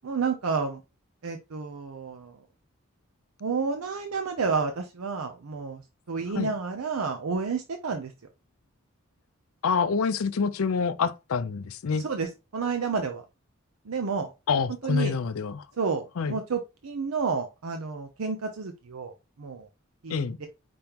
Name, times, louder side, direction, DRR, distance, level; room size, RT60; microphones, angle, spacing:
voice 1, 0.0-0.8 1.2-2.3 3.4-5.8 6.1-8.1 11.9-13.2 13.9-14.3 14.8-15.1 15.8-19.1 19.4-19.7 20.0-20.5, right 5 dB, 90° right, 0.6 m, -30 dB
voice 2, 9.6-12.1 14.5-15.6 16.2-16.4 20.1-20.4, left 5 dB, 90° left, 0.5 m, -27 dB
5.1 x 2.9 x 3.5 m
head